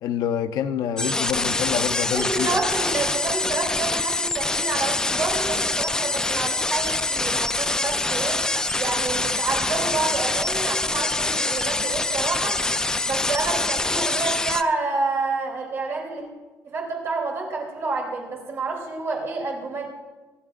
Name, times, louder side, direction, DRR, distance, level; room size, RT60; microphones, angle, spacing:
voice 1, 0.0-2.6, left 9 dB, 85° left, 8 dB, 0.8 m, -27 dB
sound 1, 1.0-14.6, left 2 dB, 10° left, 0.4 m, -25 dB
voice 2, 2.1-8.4 8.8-12.6 13.0-16.2 16.6-19.9, right 3 dB, 40° right, 0 dB, 3.2 m, -28 dB
25.0 x 11.5 x 2.5 m, 1.3 s
cardioid pair, 165°, 7 cm